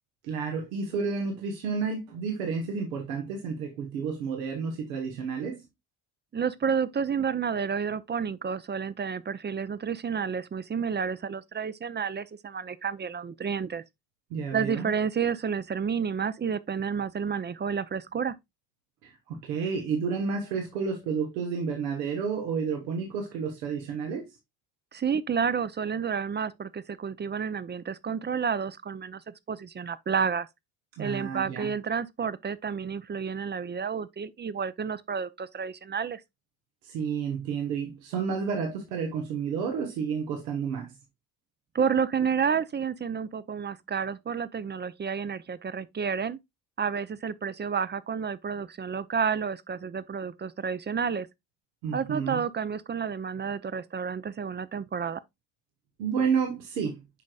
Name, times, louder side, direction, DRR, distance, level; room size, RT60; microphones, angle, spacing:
voice 1, 0.2-5.6 14.3-14.9 19.0-24.3 31.0-31.7 36.8-40.9 51.8-52.4 56.0-57.0, right 5 dB, 90° right, 1.3 m, -31 dB
voice 2, 6.3-13.8 14.5-18.3 24.9-30.5 31.0-36.2 41.7-46.4 46.8-51.3 51.9-55.2, right 6 dB, 25° right, 0.5 m, -30 dB
8.4 x 5.1 x 2.3 m
hypercardioid pair, 65°, 48 cm